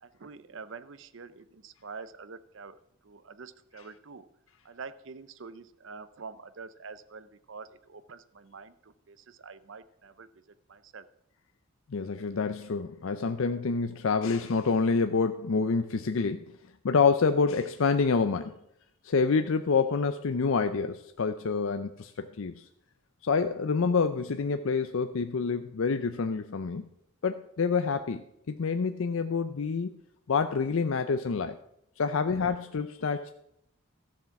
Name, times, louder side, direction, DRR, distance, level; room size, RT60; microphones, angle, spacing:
voice 1, 0.0-2.8 3.0-4.2 4.6-10.3 10.7-11.0, right 4 dB, 60° right, 14 dB, 0.6 m, -46 dB
voice 2, 11.9-16.4 16.8-18.6 19.0-22.6 23.2-26.9 27.2-29.9 30.3-31.6 32.0-33.3, left 5 dB, 70° left, 9 dB, 0.5 m, -27 dB
13.0 x 7.3 x 5.8 m, 0.77 s
head